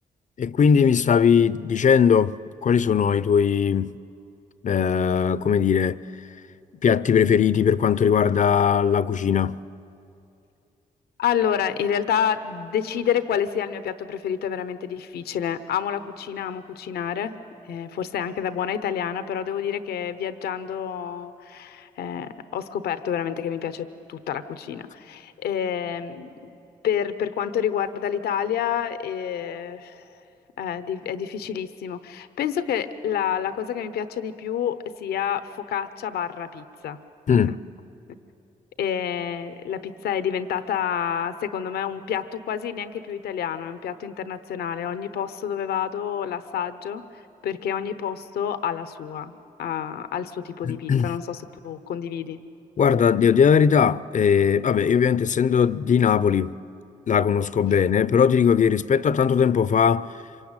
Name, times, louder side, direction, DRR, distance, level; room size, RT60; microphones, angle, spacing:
voice 1, 0.4-2.4 2.6-4.0 4.6-6.0 6.8-9.6 37.3-37.6 50.7-51.1 52.8-56.6 57.1-60.1, left 7 dB, 50° left, 0.7 m, -19 dB
voice 2, 11.2-17.4 17.7-26.3 26.8-30.1 30.6-37.0 37.3-37.4 38.8-52.4, left 8 dB, 85° left, 0.9 m, -28 dB
26.5 x 24.0 x 9.0 m
supercardioid pair, 55°, 16 cm